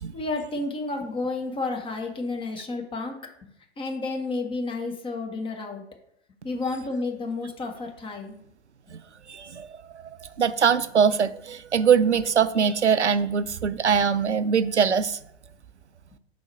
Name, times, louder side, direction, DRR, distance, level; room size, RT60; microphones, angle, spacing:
voice 1, 0.1-3.2 3.4-5.8 6.4-8.4, left 3 dB, 15° left, 3 dB, 0.9 m, -31 dB
voice 2, 9.3-9.7 10.4-15.2, right 7 dB, 90° right, 14 dB, 0.5 m, -22 dB
4.7 x 4.2 x 5.3 m, 0.73 s
figure-of-eight pair, 100°, 33 cm